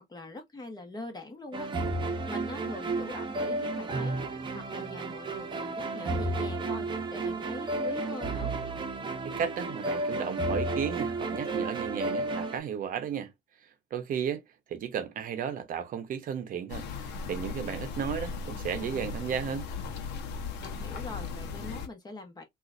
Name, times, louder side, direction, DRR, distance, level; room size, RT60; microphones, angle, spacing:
voice 1, 0.0-1.7 2.0-4.2 4.5-8.5 20.6-22.4, left 2 dB, 25° left, 1.2 m, -43 dB
sound 1, 1.5-12.6, right 2 dB, 30° right, 0.8 m, -32 dB
voice 2, 9.4-13.3 13.9-14.4 14.7-19.7, right 8 dB, 55° right, 0.7 m, -34 dB
sound 2, 16.7-21.9, left 5 dB, 90° left, 0.8 m, -37 dB
3.7 x 2.5 x 2.5 m
cardioid pair, 110°, 17 cm